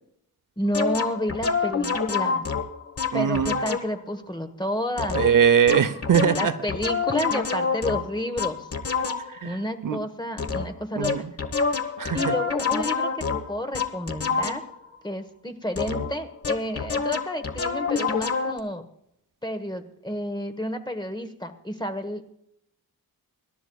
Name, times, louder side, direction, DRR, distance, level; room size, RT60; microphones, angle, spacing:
voice 1, 0.6-2.4 3.1-5.2 6.3-8.7 9.4-11.2 12.1-14.6 15.0-18.8 19.4-22.3, equal, 10° left, 8 dB, 1.3 m, -30 dB
sound 1, 0.7-4.0 5.0-9.5 10.4-10.8 11.0-14.9 15.8-18.6, left 5 dB, 40° left, 1.3 m, -27 dB
voice 2, 3.1-3.5 5.1-6.5 9.3-9.6 9.8-10.0 11.0-11.2 12.0-12.3, right 7 dB, 60° right, 12 dB, 0.8 m, -21 dB
25.5 x 12.5 x 2.3 m, 0.76 s
wide cardioid pair, 120°, 37 cm